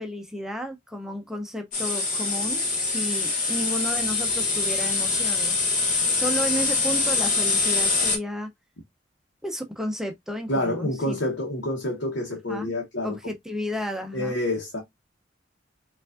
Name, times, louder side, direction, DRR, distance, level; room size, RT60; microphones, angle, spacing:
voice 1, 0.0-5.7 6.1-8.5 9.4-11.2 12.5-12.7 13.0-14.4, equal, 5° right, 0.5 m, -32 dB
sound 1, 1.7-8.2, left 4 dB, 45° left, 1.1 m, -24 dB
voice 2, 10.5-13.1 14.1-14.8, left 1 dB, 80° left, 1.0 m, -28 dB
4.6 x 2.5 x 2.4 m
head